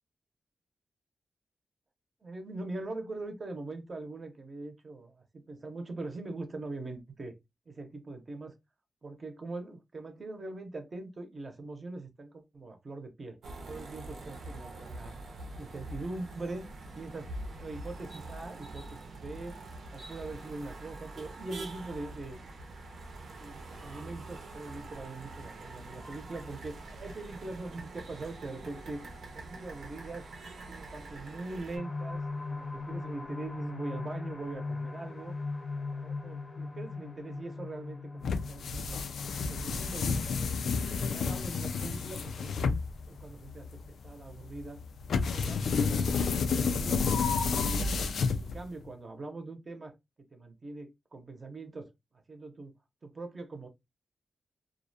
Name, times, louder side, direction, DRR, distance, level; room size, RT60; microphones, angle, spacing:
voice 1, 2.2-7.3 7.7-8.5 9.0-13.4 13.7-15.2 15.6-16.6 16.9-17.3 17.6-19.5 19.9-22.4 23.3-29.0 29.3-30.2 30.7-35.3 35.7-39.0 39.5-40.4 40.8-44.8 45.1-47.1 47.3-48.1 48.3-49.9 50.3-51.9 52.3-52.7 53.0-53.7, right 2 dB, 35° right, 0.6 m, -42 dB
sound 1, 13.4-31.8, right 2 dB, 80° right, 0.6 m, -45 dB
sound 2, 31.7-45.2 45.7-45.8 46.2-46.3, left 3 dB, 45° left, 0.6 m, -41 dB
sound 3, 38.2-48.8, left 5 dB, 90° left, 0.3 m, -30 dB
2.4 x 2.0 x 2.6 m
wide cardioid pair, 140°, 0 cm